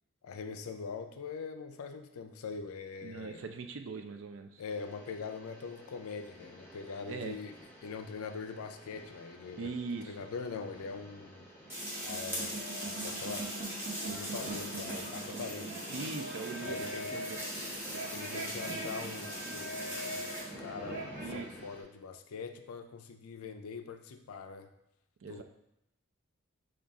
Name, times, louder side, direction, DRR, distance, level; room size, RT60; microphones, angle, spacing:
voice 1, 0.2-3.5 4.6-7.5 7.8-9.8 10.0-11.5 12.0-13.5 14.1-15.8 16.6-17.2 18.1-21.1 21.3-24.7 25.2-25.4, left 5 dB, 80° left, 6 dB, 0.4 m, -43 dB
voice 2, 3.0-4.6 7.0-7.4 9.5-10.3 15.9-17.4 21.2-21.5 25.2-25.4, right 4 dB, 60° right, 6 dB, 0.4 m, -41 dB
sound 1, 4.6-21.8, left 1 dB, 10° left, 0.6 m, -52 dB
sound 2, 11.6-21.5, right 1 dB, 45° right, 0.8 m, -42 dB
sound 3, 11.7-20.4, equal, 10° right, 1.0 m, -41 dB
5.3 x 2.4 x 3.5 m, 0.83 s
head